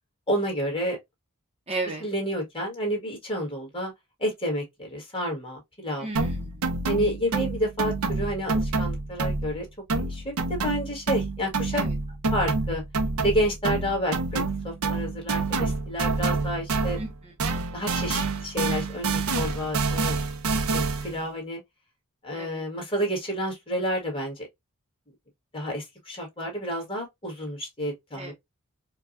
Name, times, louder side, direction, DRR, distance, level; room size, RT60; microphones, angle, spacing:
voice 1, 0.3-1.0 2.0-3.9 4.2-6.1 6.8-9.7 10.0-11.8 12.3-12.8 13.2-17.0 17.7-20.1 20.7-21.6 22.2-24.5 25.5-28.3, equal, 25° left, 1.5 m, -30 dB
voice 2, 1.7-2.0 6.0-6.5 11.7-11.9 17.0-17.3 22.3-22.6 28.1-28.3, right 2 dB, 25° right, 0.7 m, -34 dB
sound 1, 6.2-9.6 9.9-17.1 17.4-21.2, right 3 dB, 70° right, 0.6 m, -28 dB
4.5 x 2.2 x 2.5 m
head